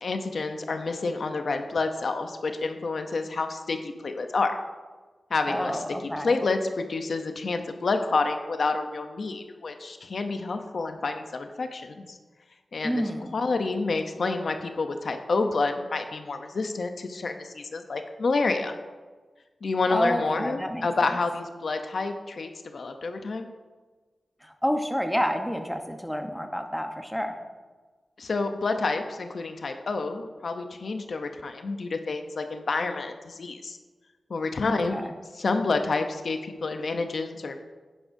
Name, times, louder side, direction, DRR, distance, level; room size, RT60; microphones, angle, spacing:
voice 1, 0.0-4.5 5.3-12.2 12.7-13.0 13.3-18.8 19.6-23.5 28.2-33.8 34.3-35.1 35.3-37.6, left 3 dB, 70° left, 6 dB, 0.7 m, -29 dB
voice 2, 5.5-6.4 12.8-13.4 19.9-21.2 24.4-27.4 34.6-35.1, equal, ahead, 4 dB, 0.9 m, -29 dB
11.0 x 10.0 x 2.7 m, 1.4 s
wide cardioid pair, 80°, 0 cm